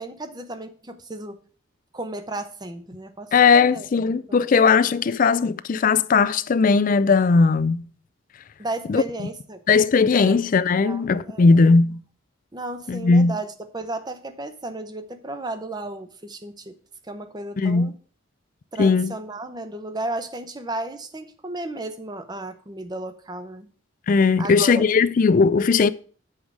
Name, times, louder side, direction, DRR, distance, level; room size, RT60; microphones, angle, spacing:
voice 1, 0.0-1.4 1.9-3.3 3.6-3.9 4.3-4.4 8.6-9.6 10.2-10.4 10.8-11.5 12.5-16.7 17.0-17.9 18.7-23.7 24.4-24.8, right 2 dB, 20° right, 0.7 m, -34 dB
voice 2, 3.3-7.9 8.9-9.0 9.7-12.0 12.9-13.4 17.6-17.9 18.8-19.1 24.1-25.9, left 4 dB, 40° left, 0.4 m, -18 dB
7.2 x 4.8 x 6.2 m
head